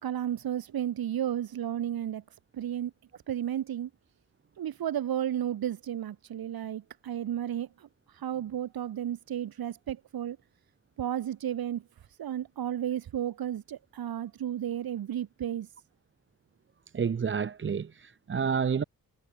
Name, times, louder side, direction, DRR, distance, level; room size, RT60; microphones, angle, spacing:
voice 1, 0.0-2.2 2.5-2.9 3.3-3.9 4.6-10.4 11.0-11.8 12.2-15.7, right 10 dB, 85° right, 2.1 m, -33 dB
voice 2, 16.9-18.8, right 6 dB, 35° right, 0.6 m, -29 dB
cardioid pair, 65°, 35 cm